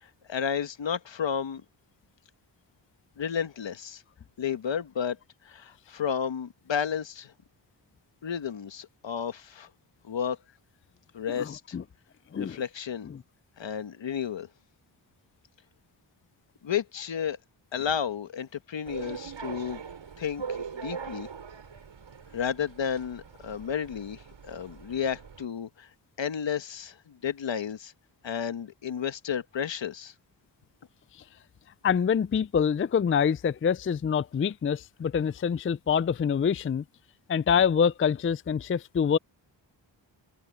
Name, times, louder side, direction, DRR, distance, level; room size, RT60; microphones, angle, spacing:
voice 1, 0.0-1.6 3.2-4.0 4.4-5.2 5.4-7.3 8.2-9.7 10.0-10.4 11.1-11.8 12.4-13.1 13.6-14.5 16.6-17.4 17.7-19.8 20.2-21.3 22.3-25.9 26.2-27.9 28.2-30.1, left 7 dB, 70° left, 1.4 m, -32 dB
voice 2, 11.3-11.8 12.3-12.6 13.1-13.2 31.8-36.8 37.3-39.2, left 7 dB, 30° left, 0.4 m, -26 dB
sound 1, 18.9-25.4, right 6 dB, 75° right, 7.6 m, -41 dB
open air
cardioid pair, 50°, 47 cm